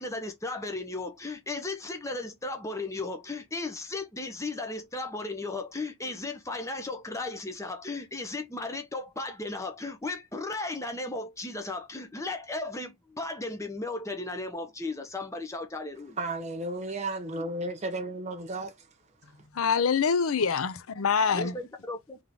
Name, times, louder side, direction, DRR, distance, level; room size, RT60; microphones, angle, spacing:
voice 1, 0.0-16.2 21.3-22.2, left 2 dB, 15° left, 0.7 m, -35 dB
voice 2, 16.2-18.7, right 2 dB, 30° right, 1.1 m, -33 dB
voice 3, 19.5-21.6, left 5 dB, 65° left, 0.5 m, -25 dB
3.6 x 3.4 x 3.6 m
head